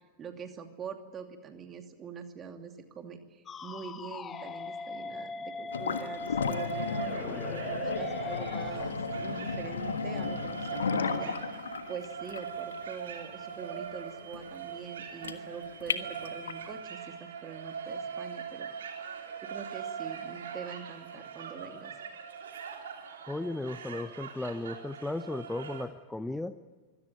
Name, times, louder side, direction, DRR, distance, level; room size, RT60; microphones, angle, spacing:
voice 1, 0.0-11.6 11.9-18.7 19.4-21.9, right 6 dB, 25° right, 6 dB, 2.7 m, -44 dB
sound 1, 3.5-8.7, left 4 dB, 20° left, 1.2 m, -40 dB
sound 2, 5.7-16.7, left 6 dB, 70° left, 1.4 m, -35 dB
sound 3, 6.5-25.8, right 7 dB, 65° right, 3.6 m, -41 dB
voice 2, 23.3-26.5, left 2 dB, 5° left, 12 dB, 0.8 m, -35 dB
25.0 x 17.0 x 9.2 m, 1.3 s
figure-of-eight pair, 90°, 0 cm